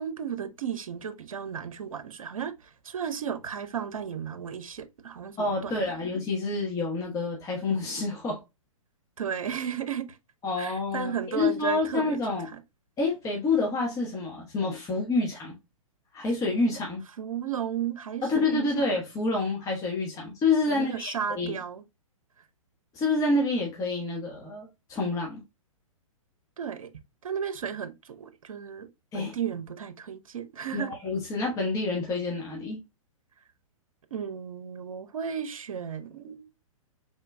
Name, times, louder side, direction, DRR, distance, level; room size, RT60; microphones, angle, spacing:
voice 1, 0.0-5.7 9.2-10.1 10.6-12.2 12.5-12.6 17.2-18.7 20.7-21.8 26.6-26.9 27.2-28.9 29.1-31.0 34.1-36.5, right 8 dB, 70° right, 0.7 m, -34 dB
voice 2, 5.4-8.4 10.4-12.5 13.0-15.5 16.1-17.0 18.2-21.6 22.9-25.4 29.1-29.3 30.7-32.8, left 3 dB, 20° left, 1.1 m, -28 dB
4.4 x 3.8 x 2.2 m
figure-of-eight pair, 115°, 18 cm